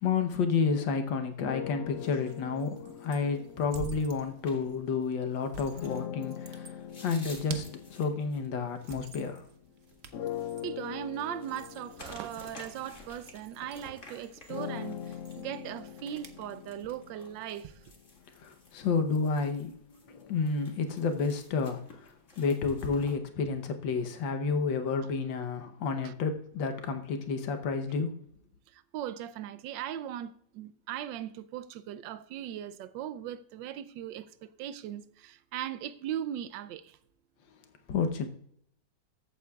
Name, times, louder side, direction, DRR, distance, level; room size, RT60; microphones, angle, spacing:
voice 1, 0.0-6.7 7.0-7.6 7.9-9.4 18.4-19.8 20.0-21.8 22.4-28.1 37.9-38.3, left 5 dB, 90° left, 1.7 m, -30 dB
sound 1, 1.4-5.0 5.8-9.5 10.1-18.1, left 9 dB, 70° left, 0.7 m, -42 dB
sound 2, 1.9-16.4, right 6 dB, 50° right, 0.8 m, -49 dB
sound 3, 4.4-23.2, left 2 dB, 40° left, 2.2 m, -54 dB
voice 2, 10.6-17.8 26.0-26.1 28.7-37.0, right 10 dB, 85° right, 1.3 m, -39 dB
14.0 x 8.4 x 2.3 m
omnidirectional pair, 2.0 m